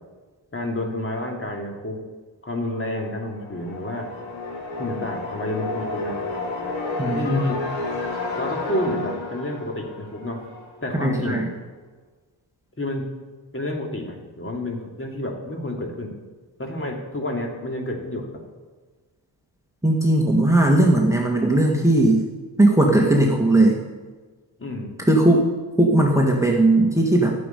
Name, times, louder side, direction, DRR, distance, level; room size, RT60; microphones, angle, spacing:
voice 1, 0.5-2.0 2.4-4.1 4.8-6.2 7.1-7.6 8.3-10.4 10.8-11.4 12.8-13.1 13.5-16.1 16.6-18.3 24.6-24.9, left 1 dB, 30° left, 1 dB, 2.7 m, -29 dB
sound 1, 3.0-10.8, left 3 dB, 85° left, 3.9 m, -31 dB
voice 2, 7.0-7.4 11.0-11.5 19.8-22.2 22.6-23.8 25.1-25.5 25.8-27.3, right 1 dB, 5° right, 0 dB, 1.8 m, -18 dB
11.5 x 7.1 x 9.3 m, 1.3 s
cardioid pair, 65°, 44 cm